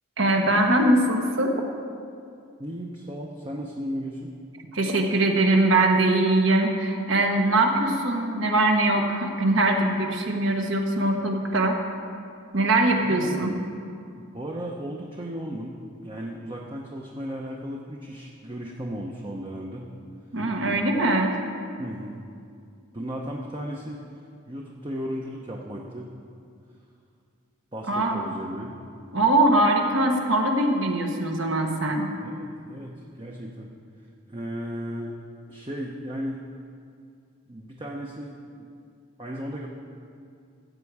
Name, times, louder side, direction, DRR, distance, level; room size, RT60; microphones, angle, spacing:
voice 1, 0.2-1.6 4.7-11.8 12.5-13.5 20.3-21.4 27.9-28.2 29.1-32.1, right 2 dB, 65° right, 2 dB, 1.3 m, -22 dB
voice 2, 2.6-4.3 13.0-13.4 14.1-19.9 21.8-22.2 22.9-24.0 24.5-26.1 27.7-28.8 32.2-33.7 34.3-35.1 35.5-36.4 37.5-38.7 39.2-39.7, equal, 25° right, -1 dB, 0.7 m, -35 dB
14.0 x 8.2 x 4.7 m, 2.4 s
head